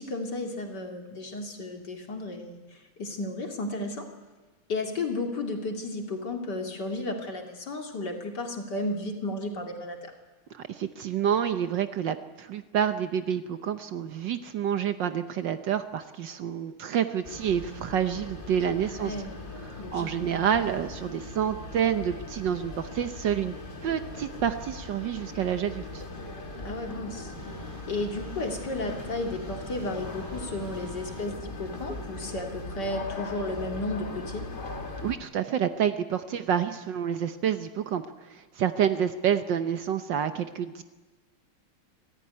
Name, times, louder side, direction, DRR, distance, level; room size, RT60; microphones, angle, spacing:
voice 1, 0.0-4.1 4.7-10.1 18.9-19.3 19.8-20.3 26.6-27.3 27.9-34.5, left 2 dB, 50° left, 3 dB, 3.0 m, -33 dB
voice 2, 10.5-19.1 19.7-23.6 23.8-26.0 35.0-40.8, right 9 dB, 65° right, 10 dB, 1.4 m, -28 dB
silent street ambience tone distant barking, 17.2-35.2, left 2 dB, 25° left, 1.6 m, -40 dB
sound 1, 17.3-32.3, equal, 5° left, 5.1 m, -50 dB
sound 2, 25.6-34.9, left 1 dB, 80° left, 3.3 m, -49 dB
25.0 x 15.0 x 9.7 m, 1.3 s
omnidirectional pair, 2.4 m